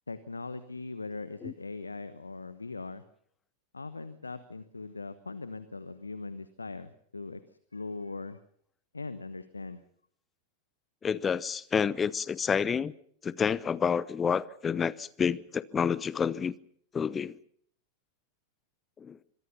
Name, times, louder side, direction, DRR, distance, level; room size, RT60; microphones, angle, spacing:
voice 1, 0.1-3.0 3.7-8.4 8.9-9.8, left 3 dB, 80° left, 1.1 m, -40 dB
voice 2, 11.0-12.9 13.2-16.5 16.9-17.4 19.0-19.2, left 6 dB, 20° left, 0.9 m, -29 dB
25.5 x 22.0 x 5.7 m
figure-of-eight pair, 90°, 0 cm